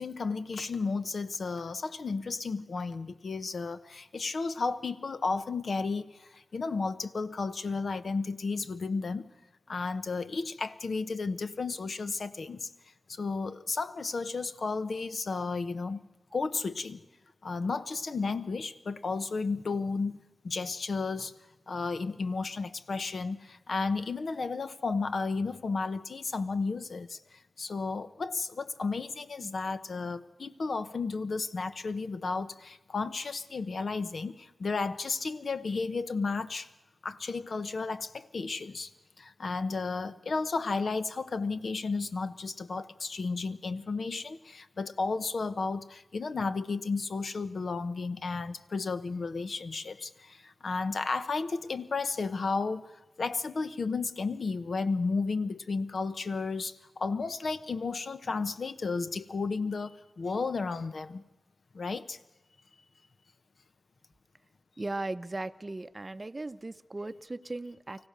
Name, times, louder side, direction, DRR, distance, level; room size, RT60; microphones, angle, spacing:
voice 1, 0.0-9.3 9.7-12.7 13.1-17.0 17.4-21.3 21.7-36.7 37.0-38.9 39.2-61.2 61.7-62.2, left 4 dB, 70° left, 12 dB, 0.9 m, -33 dB
voice 2, 64.8-68.1, right 2 dB, 30° right, 10 dB, 0.6 m, -37 dB
24.5 x 16.0 x 6.7 m, 1.1 s
wide cardioid pair, 65°, 0 cm